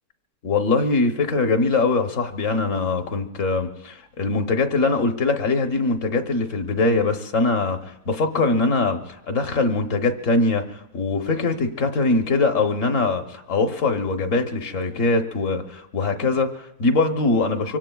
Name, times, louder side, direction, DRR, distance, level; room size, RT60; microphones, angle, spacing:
voice 1, 0.4-7.8 8.1-9.0 9.3-10.6 10.9-17.8, left 3 dB, 70° left, 6 dB, 1.3 m, -22 dB
25.0 x 24.5 x 2.3 m, 0.83 s
omnidirectional pair, 1.4 m